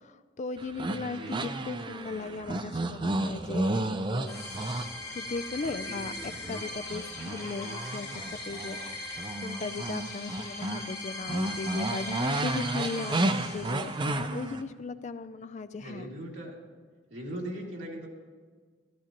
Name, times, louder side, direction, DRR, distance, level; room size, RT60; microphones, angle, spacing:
voice 1, 0.0-4.4 5.1-16.1, left 3 dB, 40° left, 13 dB, 0.4 m, -37 dB
sound 1, 0.6-5.8 6.2-10.9 11.2-14.6, right 2 dB, 25° right, 0.5 m, -32 dB
sound 2, 4.3-14.2, left 2 dB, 15° left, 3.8 m, -40 dB
voice 2, 15.8-16.5 17.1-18.1, right 1 dB, 85° right, -2 dB, 2.3 m, -39 dB
14.5 x 13.5 x 2.9 m, 1.5 s
head